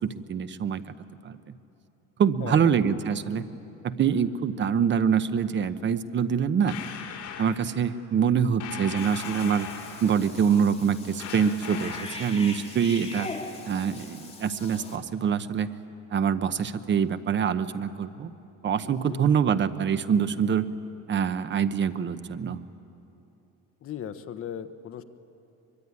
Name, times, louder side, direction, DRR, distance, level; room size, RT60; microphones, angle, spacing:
voice 1, 0.0-0.8 1.2-1.6 2.2-3.5 3.8-6.8 7.4-9.7 10.0-13.3 13.7-15.7 16.1-18.3 18.6-20.7 21.1-22.6, right 7 dB, 35° right, 12 dB, 1.0 m, -25 dB
voice 2, 2.4-2.8 18.8-19.3 23.8-25.0, left 9 dB, 45° left, 9 dB, 1.1 m, -37 dB
sound 1, 6.7-7.6 8.6-10.2 11.2-12.2, left 8 dB, 70° left, 4.8 m, -38 dB
Cat / Bathtub (filling or washing), 9.0-15.0, left 3 dB, 20° left, 2.7 m, -41 dB
23.5 x 23.5 x 9.8 m, 2.9 s
cardioid pair, 135°, 31 cm